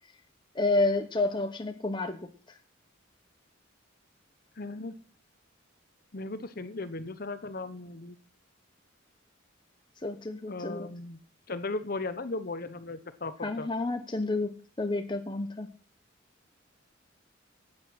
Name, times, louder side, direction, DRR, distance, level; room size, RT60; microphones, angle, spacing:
voice 1, 0.5-2.2 10.0-10.9 13.4-15.7, left 2 dB, 25° left, 6 dB, 0.8 m, -30 dB
voice 2, 4.6-4.9 6.1-8.2 10.5-11.2 11.5-13.7, left 2 dB, 45° left, 12 dB, 0.9 m, -37 dB
10.0 x 8.9 x 6.4 m, 0.40 s
head